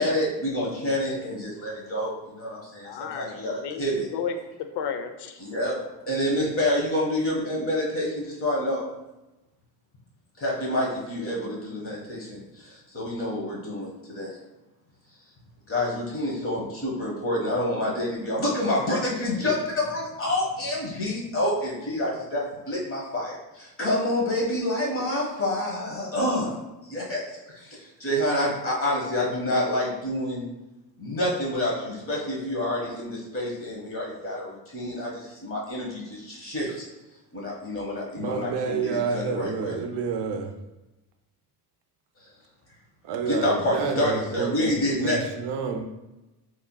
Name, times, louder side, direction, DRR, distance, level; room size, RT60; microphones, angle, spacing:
voice 1, 0.0-4.1 5.4-5.7 6.1-8.8 10.4-14.3 15.7-26.6 26.9-30.4 31.0-36.8 37.3-39.7 43.3-45.2, left 1 dB, 30° left, 1.2 m, -28 dB
voice 2, 2.8-5.4, left 6 dB, 75° left, 0.5 m, -33 dB
voice 3, 38.1-40.6 43.0-45.9, right 5 dB, 80° right, 0.6 m, -29 dB
3.4 x 2.9 x 2.2 m
cardioid pair, 105°, 41 cm